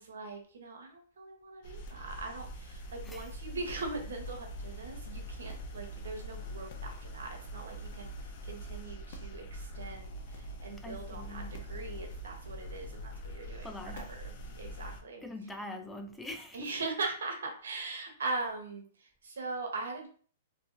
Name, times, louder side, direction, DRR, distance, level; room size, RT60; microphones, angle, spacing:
voice 1, 0.0-13.7 13.9-15.2 16.5-20.1, right 3 dB, 85° right, 0.9 m, -41 dB
sound 1, 1.6-15.0, equal, 50° left, 0.6 m, -43 dB
voice 2, 10.8-11.5 13.6-14.1 15.2-16.7, left 2 dB, 5° left, 0.4 m, -43 dB
2.7 x 2.6 x 2.5 m
hypercardioid pair, 140°, 0 cm